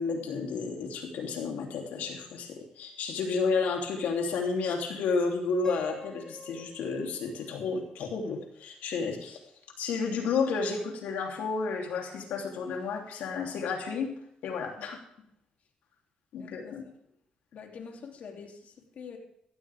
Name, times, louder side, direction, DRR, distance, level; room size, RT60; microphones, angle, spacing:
voice 1, 0.0-9.4 9.8-14.1 14.4-15.0 16.3-16.8, left 4 dB, 90° left, 1 dB, 3.2 m, -31 dB
Piano, 5.6-8.7, left 2 dB, 25° left, 2.2 m, -46 dB
voice 2, 16.4-16.9 17.5-19.2, left 6 dB, 65° left, 2 dB, 3.0 m, -46 dB
15.5 x 15.0 x 3.6 m, 0.72 s
cardioid pair, 85°, 3 cm